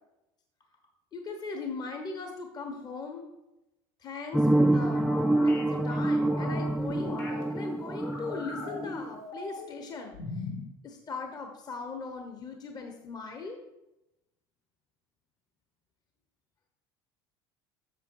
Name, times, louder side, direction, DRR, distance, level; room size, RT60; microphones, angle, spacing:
voice 1, 1.1-3.2 4.0-5.1 5.4-10.5 10.8-13.6, left 4 dB, 35° left, 4 dB, 1.0 m, -39 dB
sound 1, 4.3-9.1, right 1 dB, ahead, 0.3 m, -26 dB
sound 2, 5.1-7.4 7.9-9.8 10.1-10.7, left 3 dB, 80° left, 2.3 m, -40 dB
8.1 x 6.4 x 4.6 m, 0.95 s
supercardioid pair, 95°, 12 cm